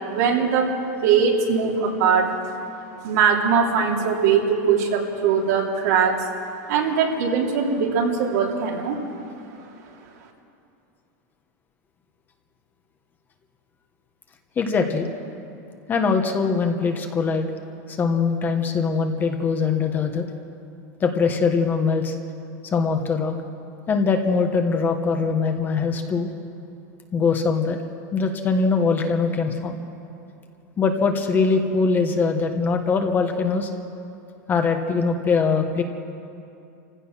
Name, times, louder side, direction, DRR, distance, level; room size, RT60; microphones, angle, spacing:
voice 1, 0.1-0.7 1.0-2.4 3.0-6.1 6.7-9.0, right 6 dB, 70° right, 0 dB, 3.2 m, -21 dB
voice 2, 14.6-15.1 15.9-17.5 17.9-20.3 21.0-22.1 22.7-23.3 23.9-26.3 27.1-27.8 28.1-29.8 30.8-33.7 34.5-35.8, left 4 dB, 20° left, 5 dB, 1.3 m, -22 dB
27.0 x 16.0 x 6.2 m, 2.6 s
supercardioid pair, 155°, 9 cm